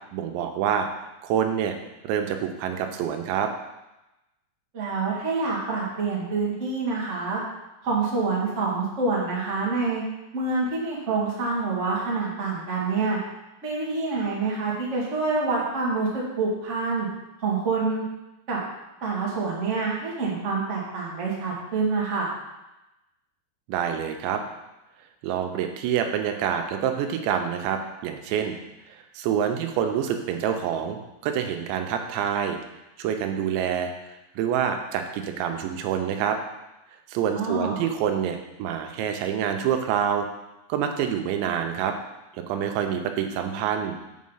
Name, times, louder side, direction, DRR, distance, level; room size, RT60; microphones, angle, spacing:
voice 1, 0.1-0.9 1.2-1.8 2.0-3.5 23.7-24.4 25.2-28.6 28.9-32.6 33.0-36.4 37.1-40.3 40.7-41.9 42.3-44.0, right 8 dB, 85° right, 5 dB, 3.1 m, -27 dB
voice 2, 4.7-7.4 7.8-10.0 10.3-13.2 13.6-17.1 17.4-18.0 18.5-18.6 19.0-22.3 37.3-37.8, right 4 dB, 50° right, -5 dB, 0.8 m, -26 dB
6.6 x 6.4 x 5.6 m, 0.97 s
omnidirectional pair, 5.1 m